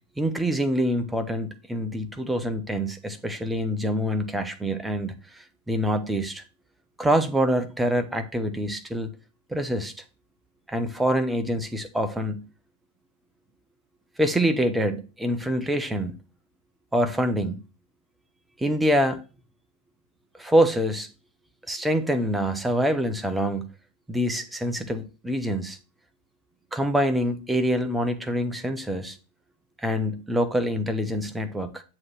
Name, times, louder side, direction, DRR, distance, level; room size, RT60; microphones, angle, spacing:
voice 1, 0.2-6.4 7.0-9.1 9.5-9.9 10.7-12.4 14.2-16.2 16.9-17.6 18.6-19.2 20.4-21.1 21.7-23.6 24.1-25.8 26.7-29.2 29.8-31.8, equal, 5° right, 0.8 m, -25 dB
7.4 x 3.1 x 6.1 m
figure-of-eight pair, 90°, 0 cm